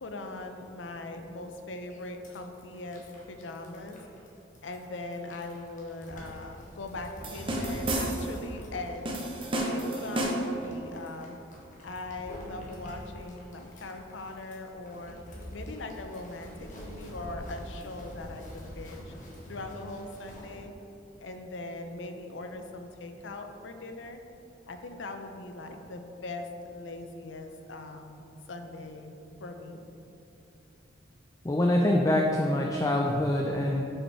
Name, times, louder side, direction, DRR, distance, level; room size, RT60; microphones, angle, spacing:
voice 1, 0.0-4.0 4.6-9.2 9.6-11.4 11.8-15.2 15.5-19.1 19.5-20.7 21.2-24.2 24.7-29.9, left 2 dB, 80° left, 5 dB, 0.6 m, -40 dB
sound 1, 1.9-20.5, equal, 40° left, 1.3 m, -45 dB
sound 2, 7.2-8.4 9.0-10.6, right 1 dB, 30° right, 0.8 m, -31 dB
voice 2, 31.4-33.8, left 1 dB, 20° left, 0 dB, 0.4 m, -25 dB
6.1 x 5.2 x 4.7 m, 3.0 s
head